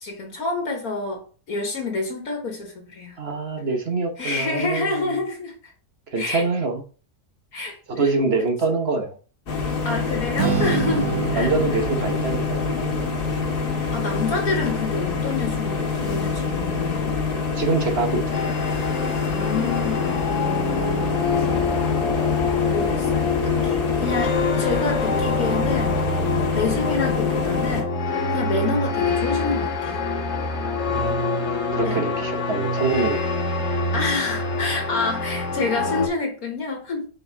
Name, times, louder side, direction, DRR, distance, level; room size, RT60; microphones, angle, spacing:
voice 1, 0.0-1.2 1.5-3.2 4.2-5.7 6.2-6.5 7.5-7.8 9.8-11.5 13.9-17.2 19.3-20.4 22.3-26.0 26.5-27.9 28.3-30.0 31.8-32.1 33.9-37.1, left 3 dB, 65° left, 1.8 m, -28 dB
voice 2, 3.2-5.2 6.1-6.8 7.9-9.1 11.4-12.7 17.6-18.5 30.6-31.1 31.5-33.3, right 3 dB, 45° right, 1.3 m, -25 dB
sound 1, 9.5-27.8, left 4 dB, 85° left, 2.0 m, -26 dB
Strum, 10.4-16.7, right 7 dB, 70° right, 1.3 m, -30 dB
sound 2, 18.3-36.1, left 3 dB, 50° left, 1.5 m, -25 dB
5.7 x 5.4 x 3.9 m
omnidirectional pair, 1.7 m